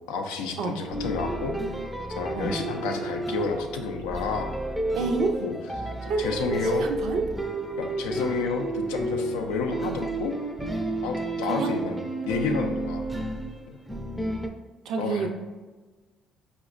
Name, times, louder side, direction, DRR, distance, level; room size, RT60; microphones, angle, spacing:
voice 1, 0.1-1.5 2.2-4.5 5.4-5.5 6.2-6.9 7.8-10.4 11.0-13.1 13.7-13.8 15.0-15.3, left 5 dB, 85° left, 4 dB, 0.3 m, -30 dB
sound 1, 0.9-14.5, right 1 dB, 10° right, 0.4 m, -31 dB
voice 2, 4.9-5.4 6.1-7.2 11.5-11.8 14.9-15.3, right 4 dB, 70° right, 4 dB, 0.4 m, -28 dB
4.8 x 2.1 x 2.4 m, 1.2 s
hypercardioid pair, 65°, 0 cm